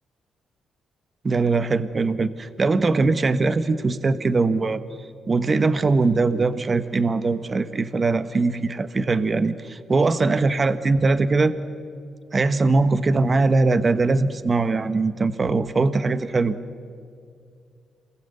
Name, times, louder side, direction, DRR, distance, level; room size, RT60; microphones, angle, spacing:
voice 1, 1.2-4.8 5.3-11.5 12.3-16.6, right 3 dB, 35° right, 12 dB, 1.1 m, -21 dB
27.5 x 21.5 x 8.0 m, 2.3 s
cardioid pair, 95°, 0 cm